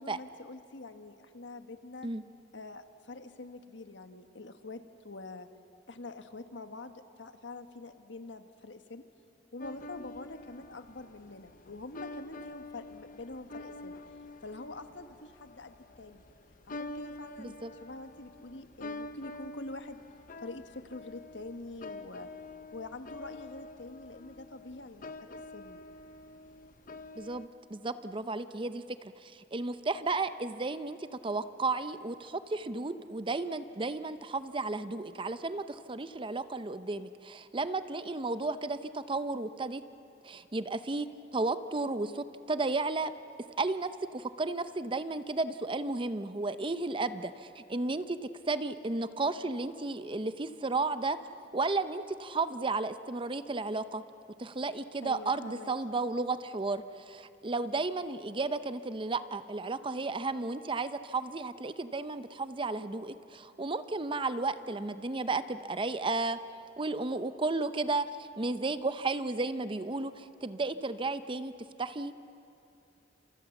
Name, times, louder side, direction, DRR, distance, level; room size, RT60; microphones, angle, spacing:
voice 1, 0.0-2.1 2.5-5.5 5.9-9.0 9.5-13.9 14.4-16.2 16.7-20.0 20.4-22.3 22.7-25.8 55.0-55.7, left 2 dB, 75° left, 8 dB, 1.4 m, -45 dB
sound 1, 9.6-27.5, left 2 dB, 50° left, 0.9 m, -47 dB
voice 2, 17.4-17.7 27.2-39.8 40.2-41.1 41.3-43.1 43.6-48.2 48.5-51.2 51.5-54.0 54.4-66.4 66.8-71.5 71.8-72.1, right 3 dB, 30° right, 12 dB, 0.7 m, -33 dB
29.0 x 27.5 x 7.2 m, 2.7 s
head